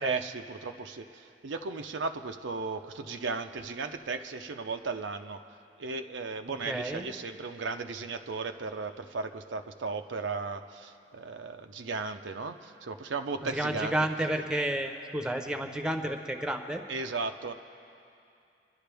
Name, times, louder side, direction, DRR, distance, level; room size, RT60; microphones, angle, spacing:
voice 1, 0.0-5.4 5.8-14.0 16.9-17.6, right 4 dB, 85° right, 6 dB, 0.6 m, -35 dB
voice 2, 6.7-7.1 13.5-16.8, right 1 dB, 5° right, 5 dB, 0.8 m, -31 dB
25.5 x 11.5 x 3.4 m, 2.6 s
head